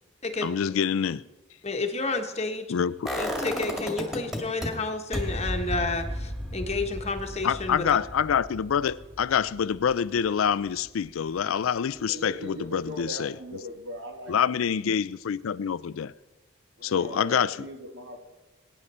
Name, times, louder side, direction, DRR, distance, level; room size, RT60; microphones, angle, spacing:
voice 1, 0.4-1.2 2.7-3.1 7.4-13.3 14.3-16.1 16.8-17.6, left 7 dB, 80° left, 0.4 m, -26 dB
voice 2, 1.6-2.7 3.2-7.8, left 3 dB, 30° left, 1.2 m, -30 dB
sound 1, 3.1-4.7 5.1-11.0 11.3-11.4, equal, ahead, 2.2 m, -34 dB
voice 3, 11.9-14.5 16.8-18.2, equal, 60° right, 2.1 m, -40 dB
22.5 x 9.9 x 4.3 m
head